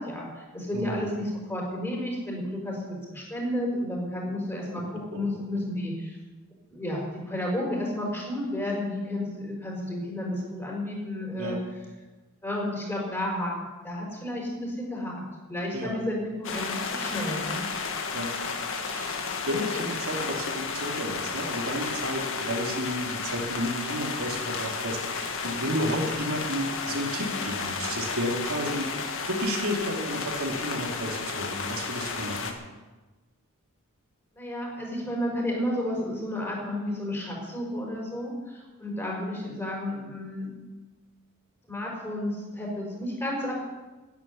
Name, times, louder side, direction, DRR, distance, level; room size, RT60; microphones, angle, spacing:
voice 1, 0.0-6.2 6.7-11.6 12.4-13.6 13.8-15.2 15.5-17.7 19.5-19.8 34.3-40.5 41.7-43.5, left 1 dB, 10° left, -2 dB, 5.4 m, -32 dB
voice 2, 0.7-1.0 4.7-5.2 11.4-11.6 15.7-16.0 18.1-18.3 18.9-19.2 19.5-32.5, equal, 70° right, -1 dB, 3.1 m, -32 dB
sound 1, 16.4-32.5, left 4 dB, 65° left, 1.8 m, -32 dB
11.5 x 10.5 x 9.7 m, 1.2 s
head